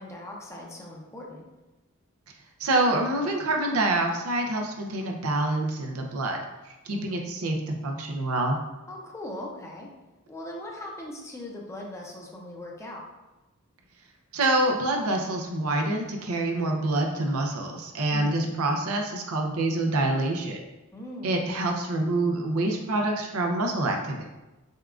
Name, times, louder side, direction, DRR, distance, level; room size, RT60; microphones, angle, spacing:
voice 1, 0.0-1.4 6.9-7.3 8.9-9.9 10.3-13.0 18.1-18.5 20.9-21.4, left 1 dB, 15° left, -1 dB, 0.6 m, -39 dB
voice 2, 2.6-8.6 14.3-20.6 21.2-24.3, right 2 dB, 85° right, 2 dB, 0.6 m, -26 dB
6.4 x 2.3 x 2.5 m, 1.1 s
head